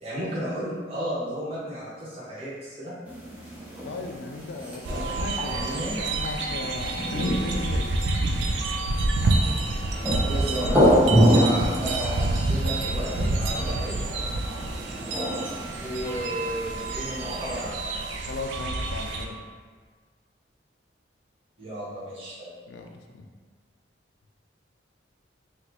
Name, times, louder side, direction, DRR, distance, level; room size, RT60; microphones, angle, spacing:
voice 1, 0.0-2.9 5.4-6.0 10.2-11.0 11.3-14.0 15.8-18.1 21.6-22.5, equal, 30° right, -10 dB, 1.2 m, -33 dB
sound 1, 3.1-17.7, equal, 5° right, 0.6 m, -27 dB
voice 2, 3.9-8.0 18.1-19.4 22.7-23.3, left 2 dB, 70° left, 3 dB, 0.3 m, -36 dB
sound 2, 4.9-19.3, right 2 dB, 75° right, 0.4 m, -28 dB
4.0 x 2.3 x 3.0 m, 1.5 s
head